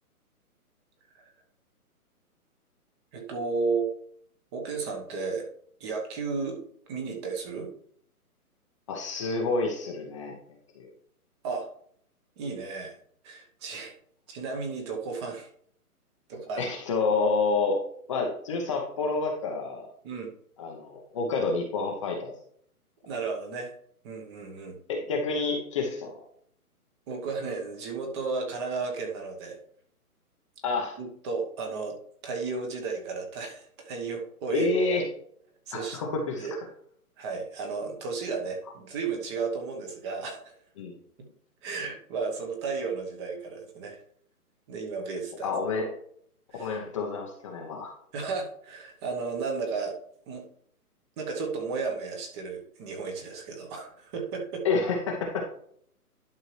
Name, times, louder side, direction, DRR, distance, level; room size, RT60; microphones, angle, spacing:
voice 1, 3.1-3.9 4.5-5.5 5.8-6.6 6.9-7.7 11.4-11.7 12.4-13.0 13.2-13.9 14.3-15.5 16.3-16.7 20.0-20.3 23.0-23.7 24.0-24.8 27.1-29.6 31.0-32.0 32.2-34.7 35.7-36.0 36.4-36.5 37.2-40.6 41.2-41.3 41.6-44.0 44.7-45.5 46.5-46.8 48.1-49.9 50.3-50.5 51.2-54.7, right 4 dB, 20° right, 3 dB, 1.0 m, -33 dB
voice 2, 8.9-10.3 10.8-10.9 16.6-17.8 18.1-19.9 20.6-22.3 24.9-26.2 30.6-30.9 34.5-35.0 35.7-36.5 40.8-40.9 45.4-45.8 46.6-47.9 54.6-55.4, left 3 dB, 20° left, 1 dB, 0.8 m, -28 dB
11.0 x 5.6 x 3.2 m, 0.62 s
hypercardioid pair, 150°, 45 cm